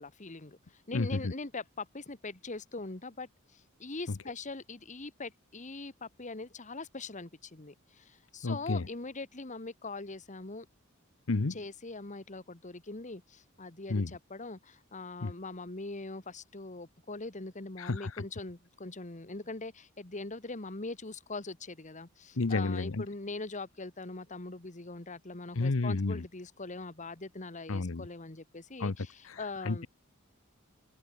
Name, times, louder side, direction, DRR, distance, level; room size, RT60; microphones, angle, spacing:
voice 1, 0.0-10.6 11.5-29.9, left 3 dB, 35° left, 1.6 m, -42 dB
voice 2, 0.9-1.3 4.1-4.2 8.4-8.9 11.3-11.6 13.9-14.1 15.2-15.3 17.8-18.2 22.4-23.0 25.5-26.2 27.7-28.1 28.8-29.0 29.2-29.9, left 3 dB, 65° left, 0.9 m, -31 dB
head